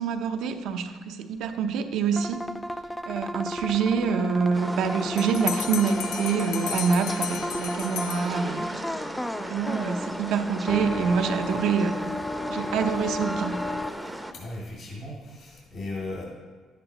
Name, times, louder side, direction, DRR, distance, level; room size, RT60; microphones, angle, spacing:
voice 1, 0.0-2.4 3.1-9.1 9.4-12.0 12.5-13.6, right 6 dB, 75° right, 7 dB, 0.7 m, -26 dB
sound 1, 2.1-13.9, left 1 dB, 10° left, 0.4 m, -34 dB
sound 2, 4.5-14.3, right 1 dB, 5° right, 0.7 m, -37 dB
Bell, 5.2-8.8, left 10 dB, 75° left, 0.5 m, -35 dB
voice 2, 14.3-16.2, left 2 dB, 50° left, -4 dB, 2.6 m, -36 dB
11.0 x 8.3 x 3.0 m, 1.4 s
supercardioid pair, 70°, 0 cm